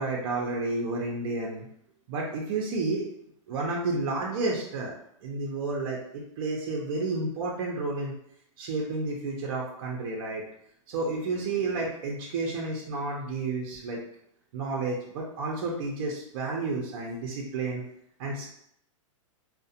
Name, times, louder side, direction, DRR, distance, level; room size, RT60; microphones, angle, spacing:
voice 1, 0.0-1.7 2.1-3.0 3.5-4.9 5.2-8.1 8.6-10.4 10.9-14.0 14.5-17.8 18.2-18.5, right 3 dB, 45° right, -2 dB, 0.5 m, -31 dB
2.4 x 2.1 x 2.7 m, 0.71 s
hypercardioid pair, 150°, 17 cm